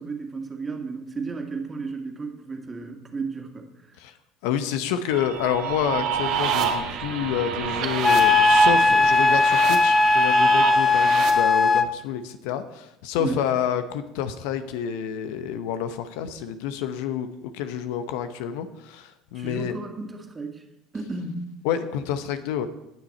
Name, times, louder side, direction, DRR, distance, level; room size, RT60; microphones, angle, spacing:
voice 1, 0.0-3.7 13.2-13.5 19.3-20.6 20.9-21.5, right 4 dB, 25° right, 3 dB, 2.2 m, -33 dB
voice 2, 4.4-19.7 21.6-22.7, left 9 dB, 70° left, 10 dB, 0.8 m, -28 dB
sound 1, 5.1-11.3, right 8 dB, 65° right, 1.8 m, -27 dB
Wind instrument woodwind instrument, 8.0-11.9, left 3 dB, 25° left, 0.7 m, -18 dB
18.0 x 6.4 x 4.3 m, 0.91 s
hypercardioid pair, 70°, 0 cm